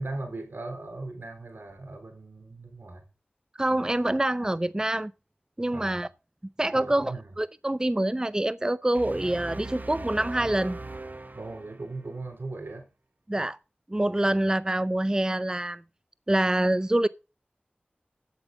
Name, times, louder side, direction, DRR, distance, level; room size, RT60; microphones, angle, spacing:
voice 1, 0.0-3.0 5.7-6.0 6.7-7.3 11.3-12.9 13.3-13.5 14.3-14.4, right 2 dB, 90° right, 3.5 m, -38 dB
voice 2, 3.6-5.1 5.6-6.1 6.6-10.8 13.3-13.6 13.9-15.8 16.3-17.1, right 1 dB, 20° right, 0.4 m, -26 dB
sound 1, 8.9-12.1, right 2 dB, 55° right, 0.8 m, -39 dB
8.2 x 8.1 x 6.9 m
wide cardioid pair, 50°, 4 cm